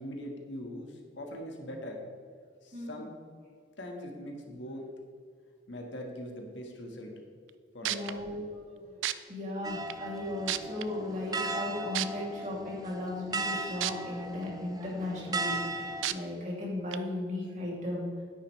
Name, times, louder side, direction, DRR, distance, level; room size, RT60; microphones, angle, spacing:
voice 1, 0.0-2.0 2.6-3.1 3.8-4.9 5.7-7.1 7.7-8.4, equal, 75° left, 1 dB, 1.5 m, -41 dB
sound 1, 7.5-7.6 7.8-8.1 9.0-9.1 9.9-10.0 10.5-10.8 11.9-12.1 13.8-13.9 14.4-14.5 16.0-16.1 16.9-17.0, right 14 dB, 85° right, 0.4 m, -30 dB
voice 2, 7.8-18.1, left 1 dB, 40° right, -4 dB, 2.5 m, -36 dB
sound 2, 9.6-16.1, right 2 dB, 20° right, 0.4 m, -37 dB
9.7 x 9.6 x 3.2 m, 2.1 s
head